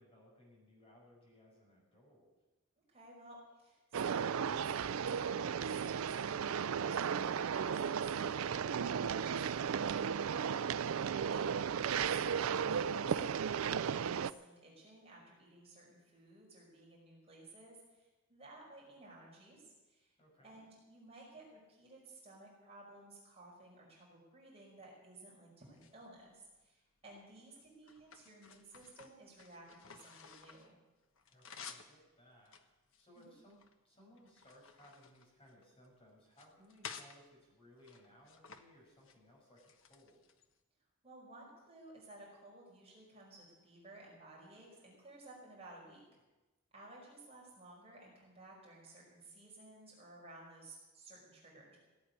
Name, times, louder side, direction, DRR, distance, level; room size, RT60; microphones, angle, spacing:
voice 1, 0.0-2.3 11.0-11.6 20.2-20.6 31.3-32.6 33.0-40.2, equal, 25° left, -2 dB, 6.0 m, -63 dB
voice 2, 2.8-10.5 11.3-20.1 20.4-30.8 33.2-33.3 41.0-46.0 46.7-51.8, right 2 dB, 30° right, -3 dB, 5.3 m, -56 dB
sound 1, 3.9-14.3, right 7 dB, 70° right, 0.4 m, -35 dB
sound 2, 25.6-26.6 27.2-30.7 31.0-31.9 32.4-33.7 34.2-35.9 36.3-37.2 37.8-38.6 38.9-39.2 39.6-40.5, left 6 dB, 65° left, 1.2 m, -54 dB
16.5 x 8.8 x 9.6 m, 1.1 s
head